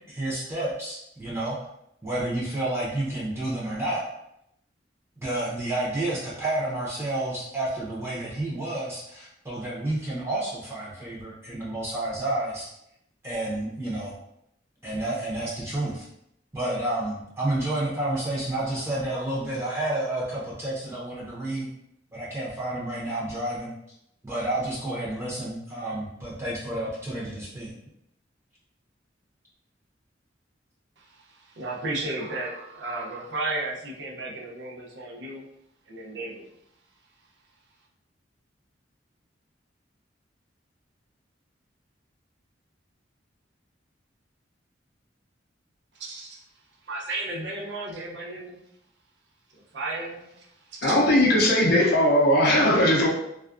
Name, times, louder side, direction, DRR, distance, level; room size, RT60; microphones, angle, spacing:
voice 1, 0.1-1.6 2.0-4.0 5.2-12.7 13.2-14.1 14.8-16.1 16.5-21.7 22.1-23.7 24.2-27.7, right 1 dB, 15° right, -7 dB, 0.7 m, -30 dB
voice 2, 31.0-35.5 35.9-36.5 45.9-46.4 46.8-48.6 49.5-51.0, right 2 dB, 70° right, -3 dB, 0.6 m, -34 dB
voice 3, 50.8-53.1, left 1 dB, 55° left, -2 dB, 0.5 m, -19 dB
2.3 x 2.2 x 2.4 m, 0.78 s
head